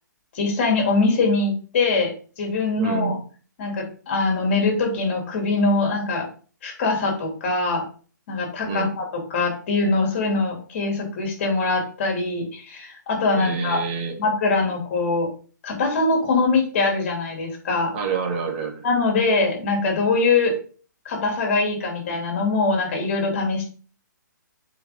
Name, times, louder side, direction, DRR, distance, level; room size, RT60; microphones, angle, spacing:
voice 1, 0.3-2.1 2.4-3.2 3.6-6.3 6.6-7.8 8.3-13.8 14.2-15.3 15.6-17.9 18.8-20.5 21.0-23.7, left 3 dB, 40° left, 2 dB, 2.8 m, -22 dB
voice 2, 2.8-3.2 8.6-8.9 13.4-14.1 17.9-18.8, right 5 dB, 35° right, 3 dB, 1.3 m, -27 dB
7.8 x 4.6 x 3.8 m, 0.40 s
figure-of-eight pair, 130°, 10 cm